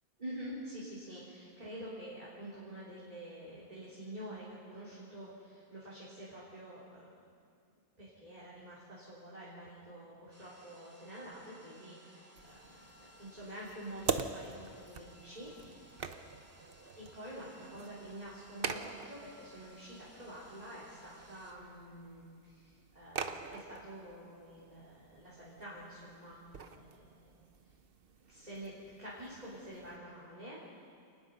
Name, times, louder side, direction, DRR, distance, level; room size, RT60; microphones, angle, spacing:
voice 1, 0.2-7.1 8.0-12.9 13.2-16.0 16.9-26.4 26.7-27.3 28.3-28.7 29.0-30.6, right 1 dB, 40° right, -8 dB, 4.0 m, -48 dB
sound 1, 10.3-21.5, equal, 15° right, 2.1 m, -60 dB
sound 2, 12.4-30.0, right 5 dB, 60° right, 1.1 m, -45 dB
29.0 x 19.5 x 5.5 m, 2.3 s
omnidirectional pair, 1.1 m